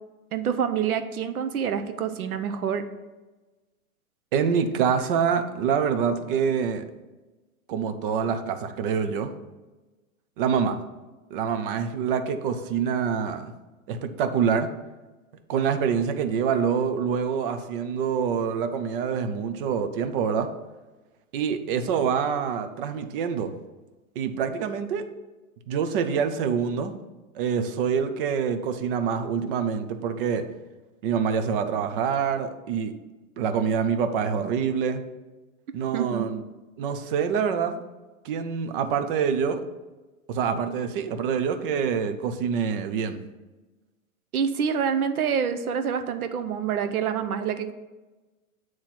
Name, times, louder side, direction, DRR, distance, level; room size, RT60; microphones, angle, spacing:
voice 1, 0.3-2.9 35.7-36.2 44.3-47.7, right 7 dB, 90° right, 9 dB, 0.8 m, -27 dB
voice 2, 4.3-6.8 7.7-9.3 10.4-10.8 11.3-13.5 13.9-14.7 15.5-20.5 21.3-23.5 24.2-25.0 25.7-26.9 27.3-30.4 31.0-32.9 33.4-35.0 35.7-36.4 36.8-37.8 38.2-39.6 40.3-43.2, right 7 dB, 40° right, 8 dB, 0.6 m, -26 dB
8.4 x 3.1 x 5.8 m, 1.2 s
hypercardioid pair, 145°, 43 cm